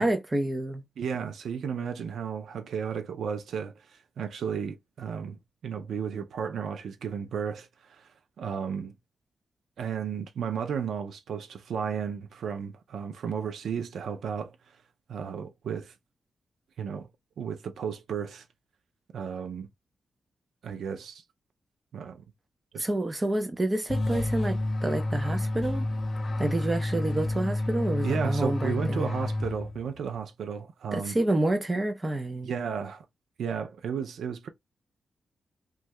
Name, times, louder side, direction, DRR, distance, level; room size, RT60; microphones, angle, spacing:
voice 1, 0.0-0.8 22.8-25.9 26.4-29.1 30.9-32.5, right 1 dB, 20° right, 0.5 m, -28 dB
voice 2, 1.0-8.1 8.4-8.9 9.8-14.6 15.1-15.9 16.8-17.1 17.4-18.4 19.1-19.7 20.6-21.2 21.9-22.2 22.7-22.9 28.0-31.2 32.4-33.0 33.4-34.5, right 7 dB, 80° right, 0.4 m, -33 dB
sound 1, 23.9-30.0, left 1 dB, 35° left, 0.4 m, -29 dB
2.7 x 2.3 x 3.1 m
wide cardioid pair, 140°, 0 cm